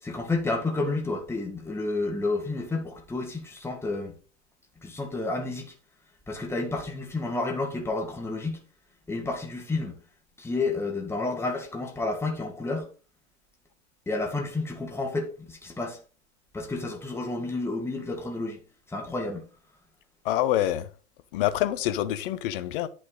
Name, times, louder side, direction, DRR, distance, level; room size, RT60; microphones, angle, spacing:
voice 1, 0.0-4.2 4.8-5.7 6.3-8.6 9.1-10.0 10.4-12.9 14.1-16.0 16.5-18.6 18.9-19.5, left 3 dB, 5° left, 1.9 m, -30 dB
voice 2, 20.2-20.9 21.3-22.9, left 13 dB, 45° left, 1.1 m, -26 dB
10.0 x 6.2 x 4.0 m
hypercardioid pair, 110°, 36 cm